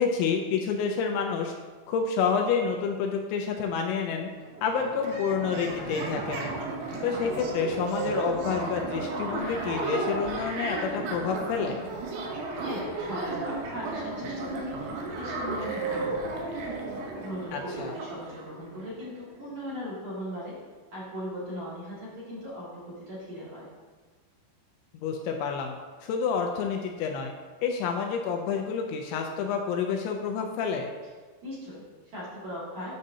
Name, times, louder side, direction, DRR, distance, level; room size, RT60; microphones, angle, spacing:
voice 1, 0.0-1.5 1.9-4.3 4.6-6.5 7.0-11.8 17.5-17.9 24.9-25.7 26.0-27.3 27.6-30.9, left 6 dB, 80° left, 2 dB, 2.7 m, -29 dB
sound 1, 4.2-4.3 4.5-19.1, right 3 dB, 80° right, 3.4 m, -34 dB
voice 2, 12.6-16.7 17.2-20.6 20.9-23.7 31.4-32.9, equal, 50° right, -9 dB, 2.6 m, -38 dB
9.7 x 6.4 x 2.7 m, 1.4 s
omnidirectional pair, 5.5 m